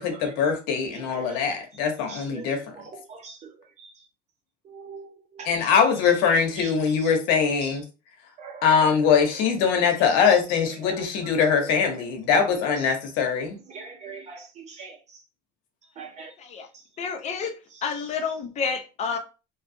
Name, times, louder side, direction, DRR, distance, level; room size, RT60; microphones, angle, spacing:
voice 1, 0.0-2.6 5.4-7.8 8.6-13.6, left 6 dB, 80° left, 0.8 m, -22 dB
voice 2, 1.0-1.4 2.1-2.5 3.1-3.5 4.7-5.5 6.6-6.7 8.4-8.6 13.7-14.9 16.0-16.3, right 5 dB, 40° right, 0.8 m, -41 dB
voice 3, 17.0-17.5 17.8-19.2, left 5 dB, 40° left, 0.6 m, -29 dB
2.7 x 2.3 x 2.6 m
supercardioid pair, 115°, 18 cm